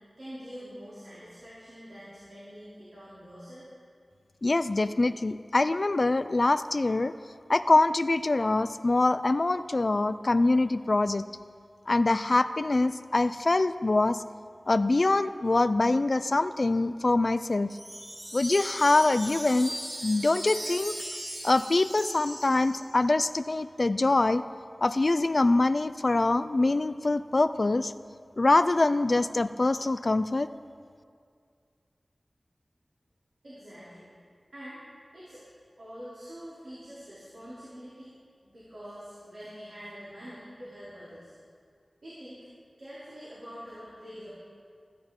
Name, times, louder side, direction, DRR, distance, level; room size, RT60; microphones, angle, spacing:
voice 1, 0.2-3.7 33.4-34.1 34.5-34.8 35.1-35.4 35.8-38.1 38.4-41.3 42.0-42.4 42.8-44.3, equal, 85° right, -11 dB, 3.2 m, -45 dB
voice 2, 4.4-7.1 7.5-11.3 11.9-14.2 14.7-17.8 18.3-19.7 20.0-21.0 21.4-24.4 24.8-27.9 28.4-30.5, left 2 dB, 55° left, 14 dB, 0.3 m, -24 dB
Wind chime, 17.7-23.1, right 1 dB, 35° right, 1.6 m, -38 dB
15.0 x 9.5 x 3.7 m, 2.2 s
wide cardioid pair, 60°, 0 cm